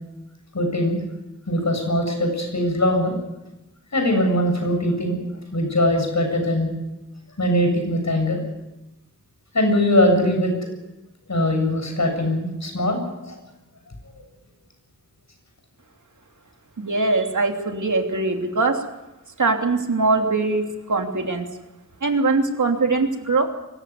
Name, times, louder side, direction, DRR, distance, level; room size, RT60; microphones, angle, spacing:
voice 1, 0.5-1.0 1.5-3.1 3.9-5.2 5.5-6.7 7.4-8.4 9.5-10.5 11.3-13.4, left 1 dB, 70° left, 4 dB, 7.5 m, -21 dB
voice 2, 16.8-18.8 19.4-21.5 22.0-23.5, right 3 dB, 85° right, 3 dB, 3.1 m, -22 dB
24.0 x 15.5 x 9.7 m, 0.97 s
wide cardioid pair, 55°, 29 cm